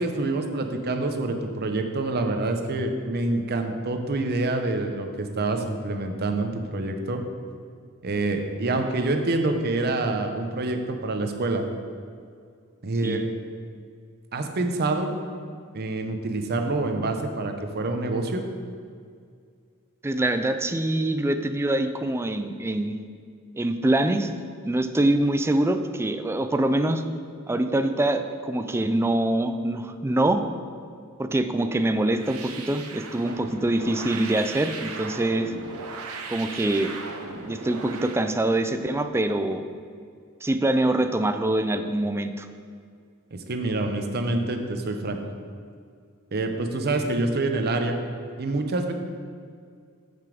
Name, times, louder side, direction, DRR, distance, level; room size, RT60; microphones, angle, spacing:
voice 1, 0.0-7.2 8.0-11.6 12.8-13.2 14.3-15.1 15.7-18.4 43.5-45.2 46.3-48.0 48.4-48.9, right 2 dB, 50° right, 5 dB, 0.7 m, -26 dB
voice 2, 20.0-23.0 23.6-24.3 24.6-27.0 27.5-30.5 31.2-35.5 36.3-36.9 37.5-39.6 40.4-42.5, right 1 dB, 10° right, 9 dB, 0.3 m, -24 dB
sound 1, 32.1-38.2, right 4 dB, 85° right, 0.8 m, -37 dB
6.9 x 6.5 x 5.0 m, 2.2 s
head